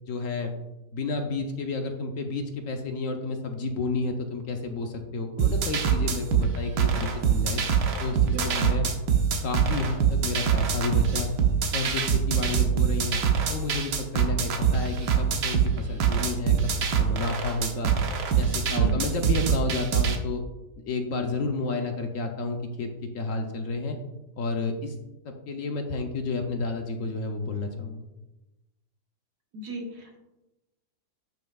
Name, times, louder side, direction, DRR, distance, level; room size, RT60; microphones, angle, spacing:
voice 1, 0.1-0.5 0.9-7.6 8.0-8.2 8.4-8.9 9.4-11.3 11.7-13.2 13.5-16.6 17.0-17.9 18.4-20.4 20.9-24.0 24.4-24.9 25.5-28.0, left 3 dB, 60° left, 4 dB, 1.0 m, -31 dB
sound 1, 5.4-20.2, right 7 dB, 85° right, 1.5 m, -24 dB
voice 2, 8.3-8.7 18.7-19.0 29.5-30.2, left 1 dB, 70° right, 0 dB, 1.9 m, -36 dB
10.5 x 5.7 x 2.3 m, 0.99 s
omnidirectional pair, 1.8 m